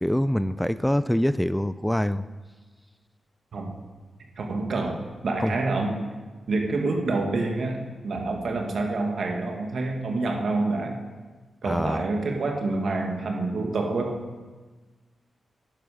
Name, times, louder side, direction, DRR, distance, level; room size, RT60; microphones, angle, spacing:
voice 1, 0.0-2.3 5.4-5.5 11.6-12.0, equal, 5° left, 14 dB, 0.3 m, -24 dB
voice 2, 4.4-6.0 6.5-11.0 11.6-14.2, right 3 dB, 75° right, 2 dB, 1.6 m, -27 dB
11.5 x 10.0 x 4.9 m, 1.3 s
cardioid pair, 70°, 0 cm